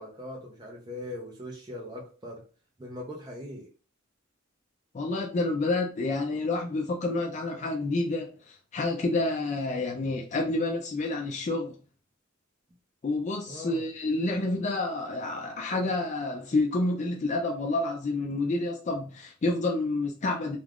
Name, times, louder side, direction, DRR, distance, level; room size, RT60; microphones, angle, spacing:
voice 1, 0.0-2.4 2.8-3.7 13.5-13.8, left 1 dB, 20° right, 0.5 m, -40 dB
voice 2, 4.9-11.7 13.0-20.6, left 2 dB, 35° left, 0.3 m, -29 dB
2.4 x 2.3 x 3.4 m
head